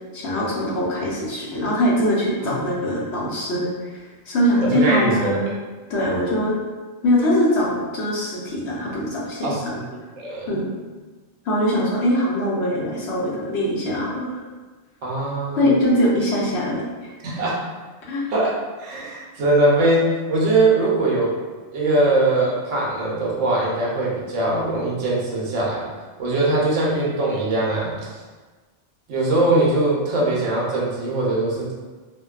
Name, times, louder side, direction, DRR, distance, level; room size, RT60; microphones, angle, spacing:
voice 1, 0.1-3.9 4.3-5.5 5.9-6.5 7.0-9.6 10.5-10.7 11.5-14.4 15.6-17.1 18.1-18.2, equal, 65° left, -5 dB, 0.9 m, -22 dB
voice 2, 4.7-5.5 9.4-9.8 10.2-10.6 15.0-15.7 17.2-17.6 18.3-21.4 21.7-25.9 26.2-28.2 29.1-31.7, right 2 dB, 80° right, -5 dB, 1.0 m, -21 dB
2.5 x 2.2 x 2.3 m, 1.3 s
omnidirectional pair, 1.2 m